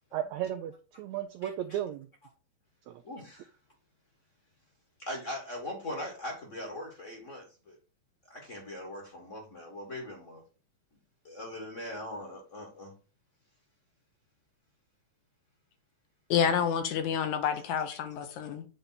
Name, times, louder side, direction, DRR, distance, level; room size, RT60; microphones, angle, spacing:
voice 1, 0.1-2.1 2.9-3.0, right 11 dB, 80° right, 1.6 m, -35 dB
voice 2, 1.4-1.8 3.0-3.5 5.0-7.8 8.3-10.4 11.2-12.9, left 1 dB, 35° left, 1.2 m, -41 dB
voice 3, 16.3-18.7, left 7 dB, 75° left, 2.0 m, -28 dB
8.9 x 3.4 x 4.0 m
omnidirectional pair, 3.7 m